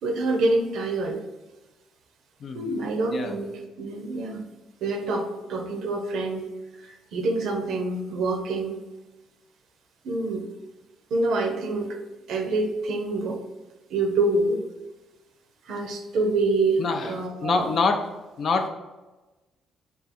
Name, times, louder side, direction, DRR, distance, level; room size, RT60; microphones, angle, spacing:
voice 1, 0.0-1.2 2.5-3.5 3.8-4.4 4.8-6.4 6.8-8.8 10.0-10.4 11.1-12.0 12.3-13.4 13.9-14.6 15.7-17.7, right 2 dB, 75° right, 4 dB, 0.5 m, -26 dB
voice 2, 2.4-2.7 3.1-3.4 16.8-17.2 17.4-18.7, left 4 dB, 55° left, 5 dB, 0.4 m, -26 dB
3.7 x 2.4 x 4.1 m, 1.1 s
supercardioid pair, 65°, 0 cm